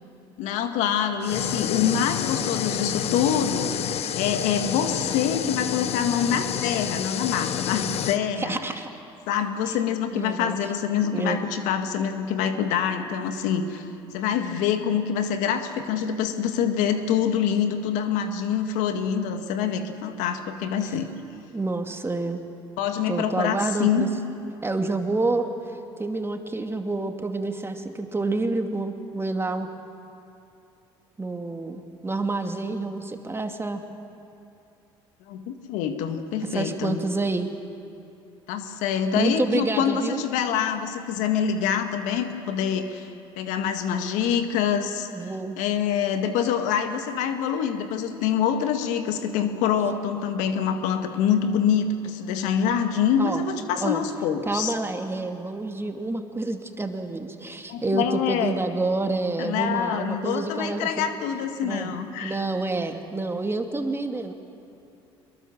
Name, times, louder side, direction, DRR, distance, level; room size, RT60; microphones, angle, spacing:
voice 1, 0.4-8.6 9.3-13.8 14.1-21.1 22.8-24.1 35.3-37.0 38.5-43.1 43.4-45.1 45.6-54.7 57.7-58.6 59.4-62.4, left 8 dB, 75° left, 7 dB, 1.8 m, -25 dB
sound 1, 1.2-8.2, left 9 dB, 50° left, 1.0 m, -29 dB
voice 2, 8.4-8.9 9.7-9.8 10.1-10.6 11.1-11.4 21.5-22.4 23.1-24.1 24.6-25.5 26.0-29.7 31.2-33.8 36.5-37.5 39.2-40.2 45.1-45.6 53.2-53.4 53.8-54.0 54.4-61.0 61.6-61.9 62.2-64.3, right 2 dB, 20° right, 5 dB, 2.4 m, -28 dB
24.5 x 22.0 x 7.4 m, 2.7 s
hypercardioid pair, 60°, 13 cm